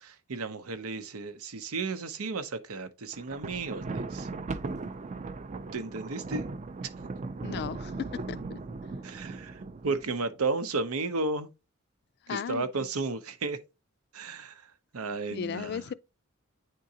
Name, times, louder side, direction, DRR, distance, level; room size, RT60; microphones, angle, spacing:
voice 1, 0.0-4.3 5.7-6.4 6.8-6.9 9.0-11.5 12.3-13.6 14.1-14.6 14.9-15.8, right 3 dB, 90° right, 0.7 m, -33 dB
Thunder, 3.1-10.4, right 3 dB, 35° right, 0.4 m, -38 dB
voice 2, 7.4-7.9 8.3-8.6 12.3-12.7 15.3-15.9, left 7 dB, 50° left, 0.3 m, -35 dB
9.2 x 3.7 x 2.8 m
head